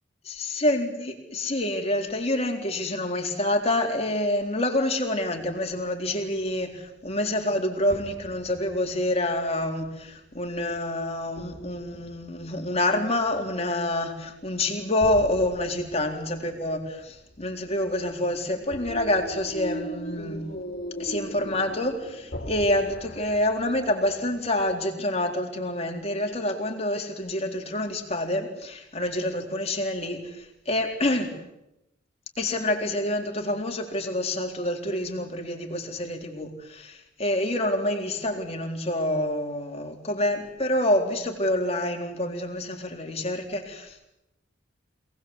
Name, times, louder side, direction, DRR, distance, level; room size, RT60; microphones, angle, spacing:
voice 1, 0.2-20.4 21.0-31.4 32.4-44.1, left 1 dB, 30° left, 2 dB, 4.1 m, -27 dB
sound 1, 5.4-5.8 6.2-7.4 7.8-10.1 10.7-12.8 13.2-13.9 14.2-14.6 15.0-24.8, equal, 50° left, 3.6 m, -40 dB
27.5 x 19.5 x 8.1 m, 0.89 s
head